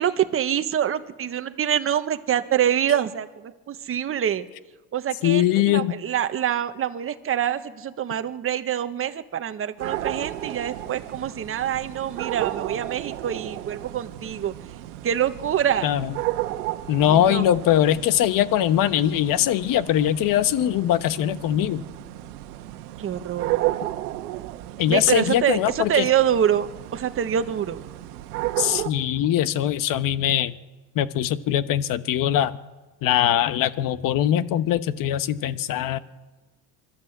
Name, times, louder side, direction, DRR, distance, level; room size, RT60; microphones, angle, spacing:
voice 1, 0.0-4.5 4.9-14.5 15.0-15.9 17.1-17.4 23.0-23.8 24.9-27.8, right 9 dB, 30° right, 9 dB, 1.3 m, -25 dB
voice 2, 5.2-5.9 15.8-16.1 16.9-21.8 24.8-26.1 28.6-30.5 30.9-32.6 33.0-36.0, left 11 dB, 50° left, 14 dB, 1.1 m, -22 dB
sound 1, 9.8-28.9, right 16 dB, 90° right, 1.3 m, -33 dB
24.5 x 13.0 x 8.0 m, 1.2 s
supercardioid pair, 120°, 44 cm